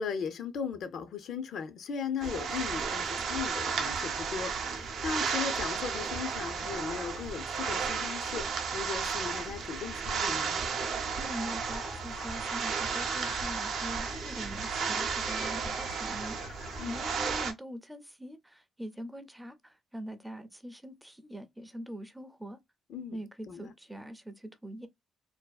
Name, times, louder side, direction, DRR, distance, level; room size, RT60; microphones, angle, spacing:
voice 1, 0.0-10.6 16.8-17.0 22.9-23.2 23.5-23.7, left 6 dB, 65° left, 0.4 m, -37 dB
sound 1, 2.2-17.5, right 6 dB, 70° right, 0.5 m, -33 dB
sound 2, 10.8-17.5, left 3 dB, 90° left, 1.2 m, -47 dB
voice 2, 11.2-22.6 23.1-24.9, equal, 5° right, 0.4 m, -43 dB
2.5 x 2.2 x 2.2 m
cardioid pair, 90°, 0 cm